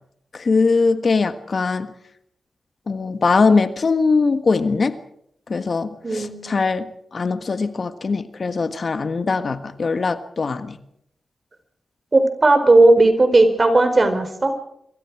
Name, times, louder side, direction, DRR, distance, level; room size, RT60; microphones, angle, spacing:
voice 1, 0.3-1.9 2.9-5.0 5.5-10.8, left 4 dB, 55° left, 10 dB, 1.5 m, -21 dB
voice 2, 6.0-6.6 12.1-14.5, right 2 dB, 40° right, 8 dB, 4.4 m, -15 dB
26.0 x 24.0 x 4.9 m, 0.73 s
cardioid pair, 75°, 0 cm